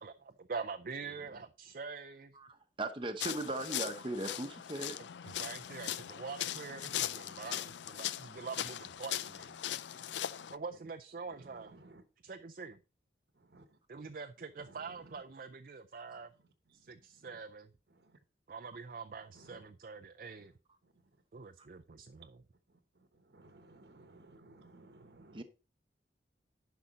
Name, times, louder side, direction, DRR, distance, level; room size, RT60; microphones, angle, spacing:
voice 1, 0.0-2.4 5.4-9.5 10.5-11.8 12.2-12.8 13.9-16.3 16.7-17.7 18.5-20.5 21.3-22.4, right 4 dB, 50° right, 6 dB, 0.5 m, -45 dB
voice 2, 2.3-5.0 16.1-16.2 25.3-25.4, right 2 dB, 30° right, 6 dB, 0.9 m, -38 dB
sound 1, 3.2-10.6, left 11 dB, 85° left, 0.4 m, -39 dB
voice 3, 23.3-25.4, right 2 dB, 70° right, 9 dB, 1.1 m, -57 dB
10.0 x 5.8 x 4.1 m, 0.33 s
head